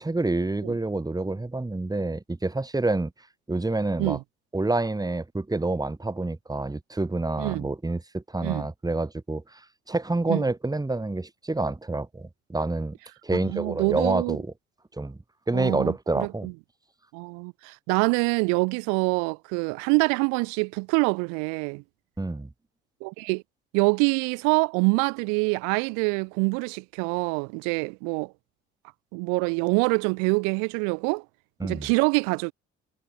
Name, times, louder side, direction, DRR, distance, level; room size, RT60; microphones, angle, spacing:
voice 1, 0.0-3.1 3.5-4.2 4.5-9.4 9.9-12.9 13.2-14.5 15.0-15.2 15.5-16.5 22.2-22.5 31.6-31.9, right 2 dB, 10° right, 1.7 m, -28 dB
voice 2, 13.4-14.4 15.5-16.5 17.1-21.8 23.0-23.4 23.7-28.3 29.1-31.2 31.6-32.5, right 38 dB, 80° right, 1.0 m, -25 dB
hypercardioid pair, 55°, 30 cm